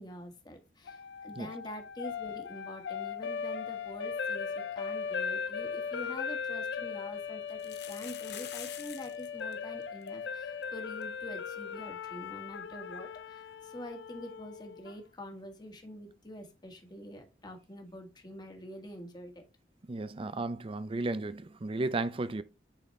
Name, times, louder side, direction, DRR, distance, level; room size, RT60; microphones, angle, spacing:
voice 1, 0.0-19.4, left 1 dB, 25° left, 1.4 m, -46 dB
sound 1, 0.9-15.0, left 6 dB, 90° left, 0.5 m, -38 dB
sound 2, 5.9-6.0 6.3-6.4 7.5-9.3 9.5-9.6 9.8-10.1 10.6-10.7 11.0-11.1 13.1-13.2, left 10 dB, 65° left, 0.8 m, -45 dB
voice 2, 19.9-22.4, right 2 dB, 30° right, 0.5 m, -34 dB
8.7 x 4.1 x 3.2 m
head